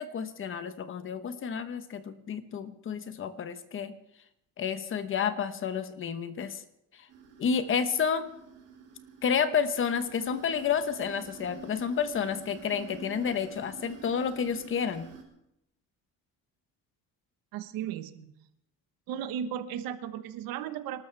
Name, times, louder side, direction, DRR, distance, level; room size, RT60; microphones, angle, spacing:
voice 1, 0.0-3.9 4.6-6.6 6.9-7.1 7.4-8.3 9.2-15.1, left 7 dB, 35° left, 10 dB, 1.1 m, -30 dB
sound 1, 7.1-15.2, right 6 dB, 45° right, 3.8 m, -49 dB
voice 2, 17.5-18.3 19.1-21.0, right 9 dB, 85° right, 11 dB, 1.2 m, -35 dB
26.5 x 13.0 x 3.4 m, 0.79 s
cardioid pair, 155°, 34 cm